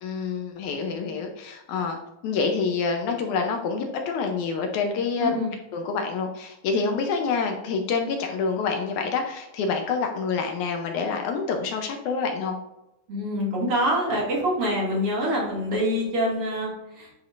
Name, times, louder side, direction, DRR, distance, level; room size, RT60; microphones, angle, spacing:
voice 1, 0.0-2.0 2.2-5.3 5.7-12.6, left 5 dB, 75° left, 3 dB, 2.0 m, -27 dB
voice 2, 5.2-5.5 13.1-17.1, equal, 45° right, -5 dB, 2.9 m, -25 dB
10.5 x 4.8 x 2.5 m, 0.92 s
omnidirectional pair, 3.7 m